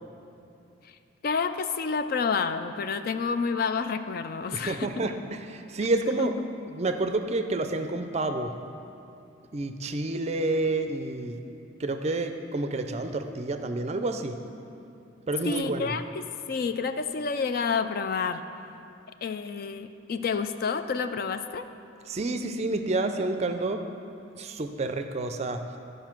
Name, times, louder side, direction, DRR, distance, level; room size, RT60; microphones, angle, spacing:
voice 1, 1.2-5.1 6.2-6.5 15.4-18.4 19.2-21.7, left 5 dB, 50° left, 10 dB, 0.3 m, -29 dB
voice 2, 4.5-6.3 6.7-8.5 9.5-11.4 11.8-14.4 15.3-15.9 22.1-23.8 24.4-25.8, right 2 dB, 35° right, 7 dB, 0.4 m, -29 dB
11.0 x 5.1 x 6.0 m, 2.7 s
head